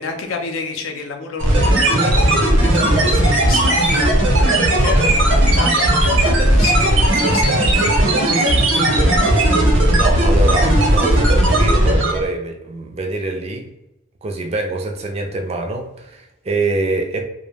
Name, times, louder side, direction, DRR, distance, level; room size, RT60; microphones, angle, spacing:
voice 1, 0.0-9.6 10.2-10.6, left 4 dB, 90° left, 4 dB, 0.5 m, -30 dB
sound 1, 1.4-12.3, right 1 dB, 70° right, 0.7 m, -15 dB
voice 2, 9.9-13.7 14.2-17.2, right 2 dB, 30° right, 3 dB, 0.3 m, -25 dB
2.2 x 2.0 x 3.2 m, 0.88 s
head